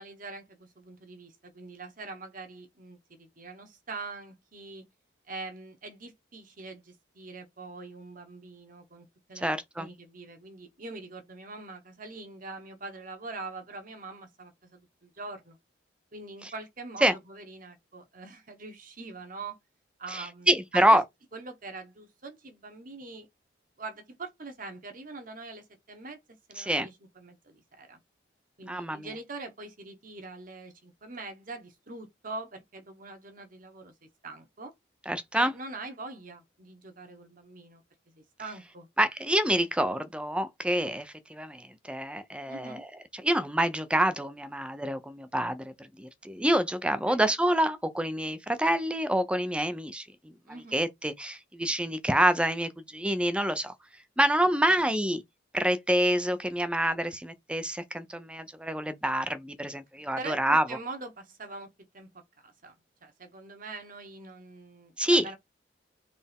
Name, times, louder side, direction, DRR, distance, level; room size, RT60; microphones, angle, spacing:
voice 1, 0.0-4.9 5.3-15.6 16.1-19.6 20.0-21.0 21.3-23.3 23.8-26.2 26.5-28.0 28.6-34.7 35.3-37.8 38.1-38.9 42.5-42.8 47.1-47.3 50.4-50.8 54.4-54.9 60.2-62.1 62.4-62.7 63.0-65.3, right 3 dB, 45° right, 1.3 m, -43 dB
voice 2, 9.4-9.9 17.0-17.1 20.1-21.0 26.6-26.9 28.7-29.1 35.1-35.5 39.0-42.8 43.2-50.3 50.7-53.7 54.2-55.2 55.5-60.6 65.0-65.3, right 1 dB, 5° right, 0.6 m, -27 dB
4.2 x 3.4 x 3.6 m
head